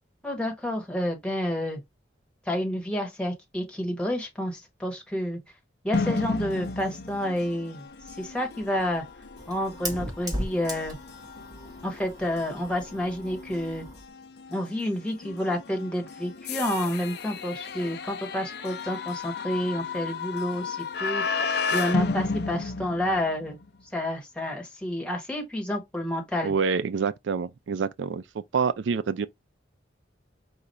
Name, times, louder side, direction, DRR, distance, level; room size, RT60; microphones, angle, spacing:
voice 1, 0.2-1.8 2.5-5.4 5.8-7.8 8.2-9.0 9.5-11.0 11.8-13.9 14.5-21.4 21.7-23.6 23.9-26.5, left 1 dB, 5° left, 1.3 m, -29 dB
sound 1, 5.9-23.7, left 4 dB, 60° left, 0.5 m, -34 dB
Fire, 7.9-14.1, equal, 20° right, 1.5 m, -38 dB
voice 2, 26.4-28.2 28.5-29.3, right 5 dB, 85° right, 0.4 m, -26 dB
5.0 x 2.3 x 4.1 m
head